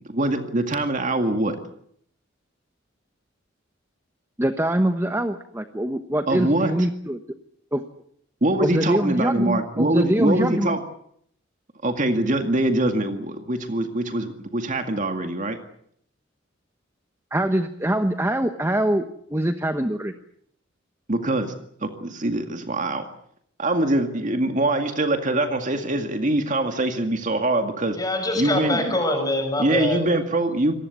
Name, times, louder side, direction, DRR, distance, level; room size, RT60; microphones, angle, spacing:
voice 1, 0.1-1.6 6.3-6.7 8.4-10.8 11.8-15.6 21.1-21.5 21.8-23.0 23.6-28.0 28.4-28.9 29.6-30.7, right 1 dB, 40° right, 6 dB, 2.1 m, -23 dB
voice 2, 4.4-7.2 7.7-7.8 8.6-10.8 17.3-19.0 19.3-20.1, right 1 dB, 15° right, 7 dB, 1.1 m, -23 dB
voice 3, 27.9-30.0, left 1 dB, 20° left, 6 dB, 6.2 m, -24 dB
26.5 x 19.0 x 8.3 m, 0.68 s
head